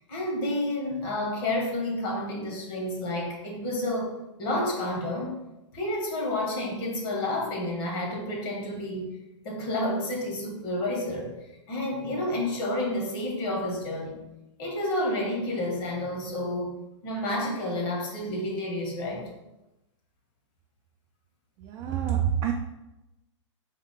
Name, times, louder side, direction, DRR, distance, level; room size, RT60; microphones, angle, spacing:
voice 1, 0.1-5.4 5.7-9.1 9.4-11.3 11.7-14.2 14.6-16.8 17.0-19.3, left 1 dB, 50° left, 0 dB, 1.5 m, -30 dB
voice 2, 21.6-22.5, right 9 dB, 25° right, 2 dB, 0.3 m, -27 dB
3.7 x 3.6 x 3.7 m, 0.95 s
hypercardioid pair, 140°, 16 cm